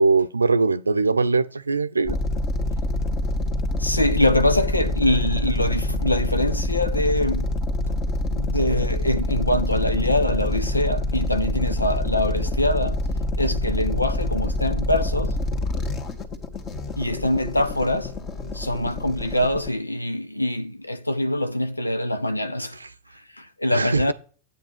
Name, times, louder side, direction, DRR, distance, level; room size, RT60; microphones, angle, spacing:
voice 1, 0.0-2.2 23.7-24.1, right 3 dB, 80° right, 0.6 m, -21 dB
sound 1, 2.1-19.7, left 1 dB, 30° left, 1.9 m, -26 dB
voice 2, 3.8-7.5 8.3-13.0 13.4-15.4 17.0-22.8 23.1-24.1, left 1 dB, 85° left, 0.7 m, -24 dB
11.0 x 8.5 x 5.9 m
figure-of-eight pair, 90°, 0 cm